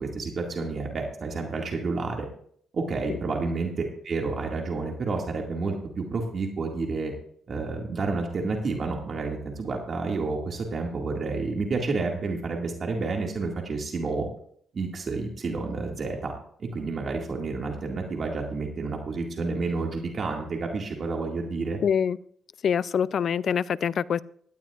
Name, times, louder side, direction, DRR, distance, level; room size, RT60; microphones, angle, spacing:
voice 1, 0.0-2.3 2.7-7.1 7.5-14.3 14.7-16.3 16.6-21.8, right 3 dB, 45° right, 2.1 m, -30 dB
voice 2, 21.8-22.2 22.6-24.2, left 7 dB, 55° left, 0.4 m, -25 dB
16.5 x 12.5 x 2.5 m
cardioid pair, 90°, 0 cm